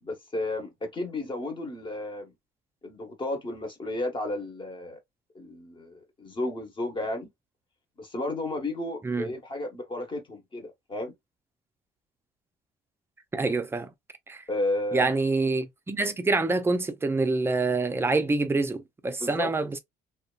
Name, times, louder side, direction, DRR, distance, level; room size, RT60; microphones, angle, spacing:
voice 1, 0.0-2.3 2.8-5.0 5.3-7.3 8.0-11.1 14.5-15.1 19.2-19.5, left 1 dB, 30° left, 1.1 m, -33 dB
voice 2, 13.3-13.9 14.3-14.4 14.9-19.8, right 3 dB, 15° right, 0.5 m, -26 dB
2.7 x 2.3 x 2.3 m
cardioid pair, 110°, 17 cm